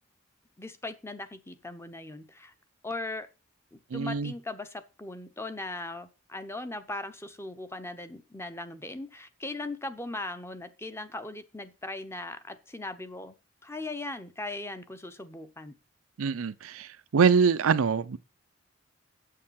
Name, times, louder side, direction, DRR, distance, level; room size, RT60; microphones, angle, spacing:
voice 1, 0.6-2.5 2.8-3.3 3.7-13.4 13.6-15.8, left 2 dB, 15° left, 0.8 m, -39 dB
voice 2, 3.9-4.3 16.2-18.2, right 6 dB, 90° right, 0.5 m, -24 dB
8.4 x 6.6 x 5.7 m
head